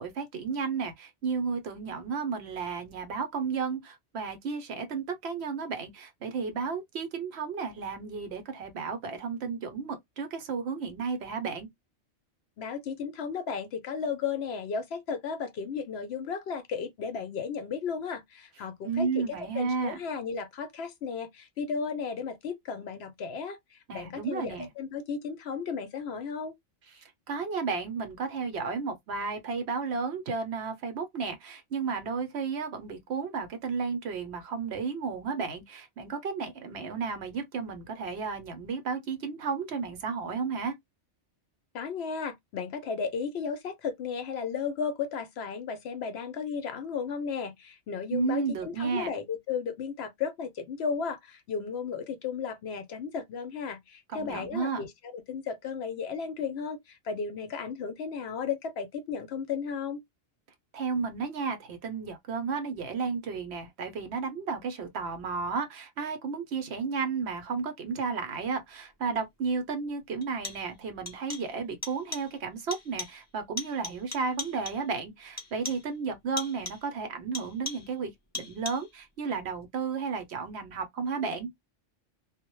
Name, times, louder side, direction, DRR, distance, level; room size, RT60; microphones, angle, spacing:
voice 1, 0.0-11.7 18.8-20.0 23.9-24.7 26.9-40.7 48.1-49.1 54.1-54.8 60.7-81.5, right 5 dB, 65° right, 0.8 m, -33 dB
voice 2, 12.6-26.5 41.7-60.0, left 6 dB, 65° left, 0.7 m, -34 dB
sound 1, 69.2-69.3 70.2-70.8 71.1-71.6 71.8-72.4 72.7-73.3 73.6-74.9 75.4-76.0 76.4-76.9 77.3-78.0 78.3-79.0, left 3 dB, 30° left, 0.3 m, -40 dB
2.1 x 2.0 x 2.9 m
omnidirectional pair, 1.3 m